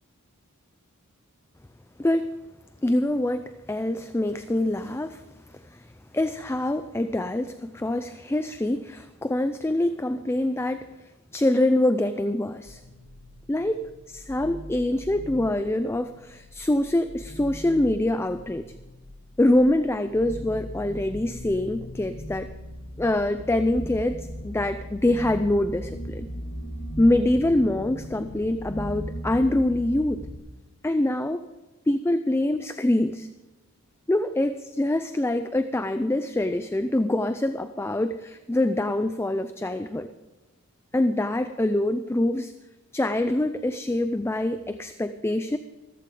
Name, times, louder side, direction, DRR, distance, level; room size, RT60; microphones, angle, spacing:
voice 1, 2.0-2.3 2.8-5.2 5.5-10.9 11.3-12.8 13.5-13.8 14.1-18.7 19.4-22.5 23.0-26.3 27.0-30.3 30.8-31.5 31.9-33.3 34.1-40.1 40.9-42.5 42.9-45.6, left 1 dB, 10° left, 11 dB, 0.4 m, -25 dB
sound 1, 12.7-30.4, equal, 35° left, 2.3 m, -39 dB
15.0 x 14.5 x 3.8 m, 1.2 s
head